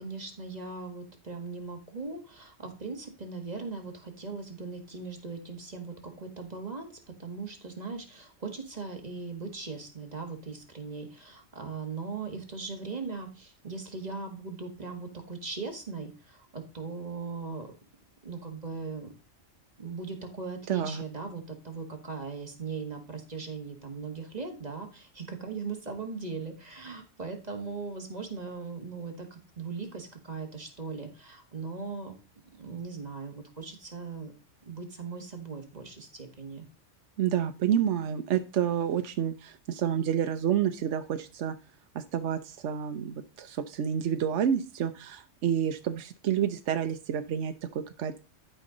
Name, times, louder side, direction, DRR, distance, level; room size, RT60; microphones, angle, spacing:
voice 1, 0.0-6.9 7.2-17.7 18.2-19.1 19.8-32.1 32.5-34.3 34.7-36.7, right 4 dB, 35° right, 4 dB, 1.8 m, -39 dB
voice 2, 20.7-21.0 37.2-41.5 41.9-48.2, right 9 dB, 70° right, 8 dB, 1.0 m, -29 dB
12.0 x 5.4 x 3.8 m, 0.32 s
omnidirectional pair, 1.3 m